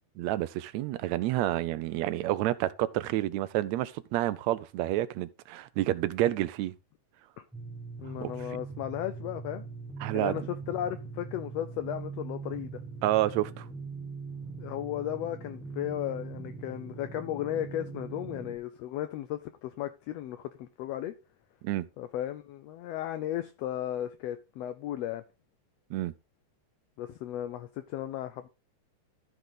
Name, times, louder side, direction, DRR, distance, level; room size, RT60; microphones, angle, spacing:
voice 1, 0.2-6.7 8.2-8.3 10.0-10.4 13.0-13.7 21.6-21.9 25.9-26.1, right 14 dB, 80° right, 1.8 m, -29 dB
sound 1, 7.5-18.6, right 4 dB, ahead, 1.3 m, -41 dB
voice 2, 8.0-9.6 10.1-12.7 14.6-21.1 22.0-25.2 27.0-28.5, left 12 dB, 75° left, 1.6 m, -35 dB
14.0 x 4.7 x 3.9 m
omnidirectional pair, 3.4 m